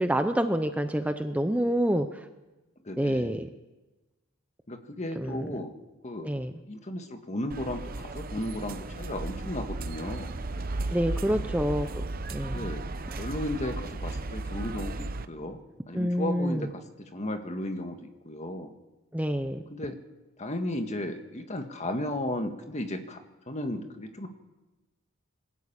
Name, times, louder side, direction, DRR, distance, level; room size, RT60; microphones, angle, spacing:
voice 1, 0.0-2.2 3.0-3.5 5.2-5.4 6.2-6.5 10.9-11.9 12.3-12.6 15.9-16.6 19.1-19.7, equal, 5° right, 8 dB, 0.7 m, -27 dB
voice 2, 2.8-3.4 4.7-5.7 6.0-6.3 6.6-10.3 11.3-11.4 12.5-12.9 13.2-15.6 15.9-18.7 19.7-20.0 20.4-23.2 23.5-24.3, left 1 dB, 35° left, 6 dB, 1.7 m, -35 dB
sound 1, 7.5-15.3, right 2 dB, 45° right, 0.8 m, -35 dB
22.5 x 13.5 x 8.8 m, 1.1 s
head